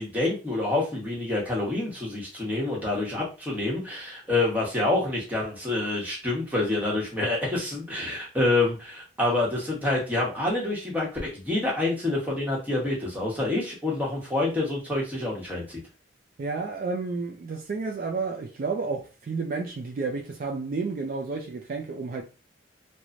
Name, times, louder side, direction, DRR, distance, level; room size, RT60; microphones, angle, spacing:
voice 1, 0.0-15.8, left 2 dB, 10° right, 1.0 m, -27 dB
voice 2, 16.4-22.2, right 4 dB, 45° right, 0.3 m, -31 dB
3.0 x 2.1 x 2.5 m
head